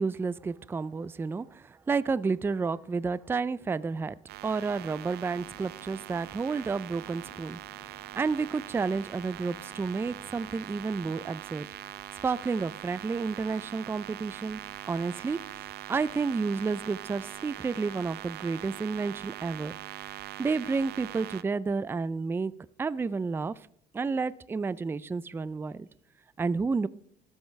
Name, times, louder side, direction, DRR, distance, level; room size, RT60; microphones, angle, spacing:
voice 1, 0.0-4.1 4.4-11.7 12.2-14.6 14.9-15.4 15.9-19.7 20.4-22.5 22.8-23.5 23.9-25.9 26.4-26.9, right 4 dB, 15° right, 18 dB, 0.3 m, -31 dB
sound 1, 4.3-21.4, right 15 dB, 75° right, 0.5 m, -43 dB
sound 2, 5.3-10.9, right 4 dB, 90° right, 4.5 m, -57 dB
18.0 x 8.1 x 3.2 m, 0.65 s
cardioid pair, 110°, 17 cm